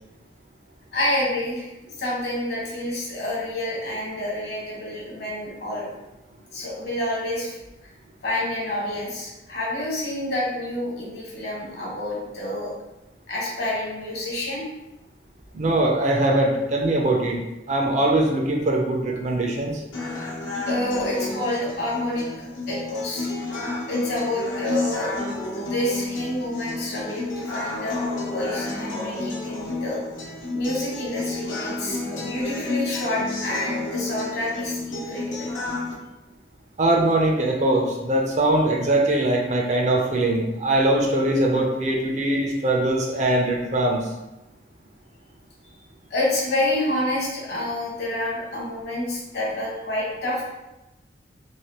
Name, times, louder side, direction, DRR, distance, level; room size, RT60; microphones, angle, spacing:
voice 1, 0.9-5.8 6.5-7.5 8.2-12.7 13.3-14.6 20.6-22.3 22.7-23.3 23.9-25.1 25.5-30.0 30.5-35.6 46.1-50.4, left 1 dB, 60° left, -5 dB, 1.1 m, -28 dB
voice 2, 15.5-17.4 17.7-19.8 36.8-44.1, right 1 dB, 35° right, 0 dB, 0.4 m, -21 dB
sound 1, 19.9-35.9, left 2 dB, 85° left, 0.9 m, -31 dB
3.1 x 2.5 x 2.9 m, 0.99 s
head